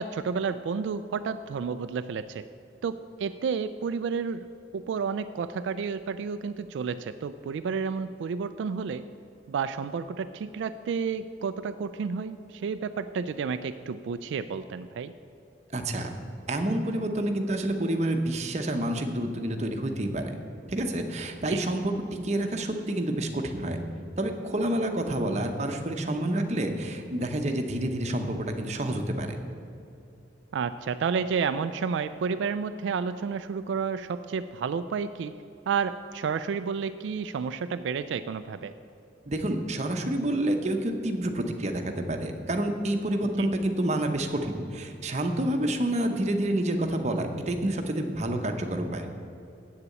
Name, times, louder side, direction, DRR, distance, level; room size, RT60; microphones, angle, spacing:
voice 1, 0.0-2.4 2.8-4.5 4.7-9.0 9.5-15.1 21.5-21.6 30.5-35.3 35.7-38.7 43.4-43.5, right 6 dB, 75° right, 11 dB, 0.3 m, -31 dB
voice 2, 15.7-16.1 16.5-20.3 20.7-21.9 22.2-23.8 24.2-29.4 39.3-49.0, right 1 dB, 35° right, 5 dB, 0.8 m, -28 dB
8.1 x 6.9 x 8.4 m, 2.8 s
head